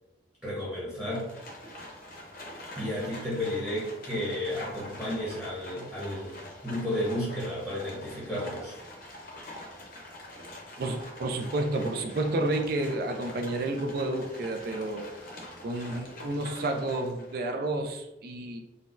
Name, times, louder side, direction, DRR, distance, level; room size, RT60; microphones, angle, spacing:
voice 1, 0.4-1.3 2.8-8.8, left 1 dB, 5° right, -8 dB, 0.8 m, -32 dB
Livestock farm animals working animals, 1.0-17.4, left 1 dB, 50° left, 0.6 m, -45 dB
voice 2, 10.8-15.1 15.6-18.6, right 2 dB, 55° right, 5 dB, 0.3 m, -30 dB
3.9 x 2.1 x 2.5 m, 0.96 s
head